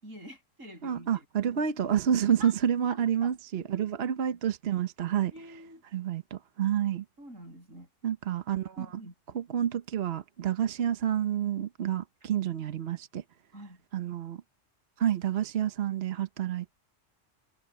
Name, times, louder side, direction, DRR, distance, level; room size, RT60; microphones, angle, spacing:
voice 1, 0.0-1.3 2.4-2.5 2.9-4.1 5.3-5.8 7.2-7.9 8.8-9.1 13.5-13.8, equal, 90° right, 7.0 m, -47 dB
voice 2, 0.8-5.3 5.9-7.0 8.0-9.0 9.3-13.2 13.9-14.4 15.0-16.7, right 9 dB, 55° right, 1.0 m, -29 dB
omnidirectional pair, 1.3 m